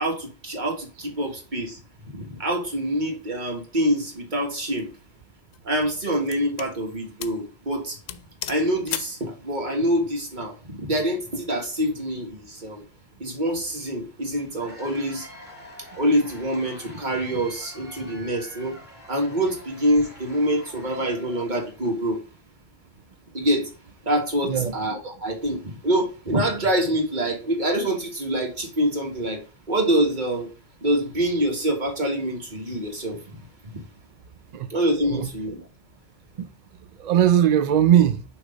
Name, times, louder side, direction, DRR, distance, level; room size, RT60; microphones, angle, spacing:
voice 1, 0.0-1.8 2.1-4.9 5.7-8.0 8.5-12.8 13.2-15.3 16.0-18.8 19.1-22.2 23.3-23.7 24.1-29.4 29.7-30.5 30.8-33.2 34.7-35.6, right 1 dB, 35° right, 1.7 m, -25 dB
sound 1, 4.6-4.8 5.5-6.8 7.2-7.5 7.7-7.8 8.1-9.2, left 11 dB, 85° left, 1.0 m, -35 dB
Cheering / Applause / Crowd, 14.4-22.0, equal, 10° left, 2.5 m, -46 dB
voice 2, 37.0-38.2, right 10 dB, 70° right, 0.4 m, -19 dB
6.3 x 3.1 x 5.0 m
omnidirectional pair, 1.3 m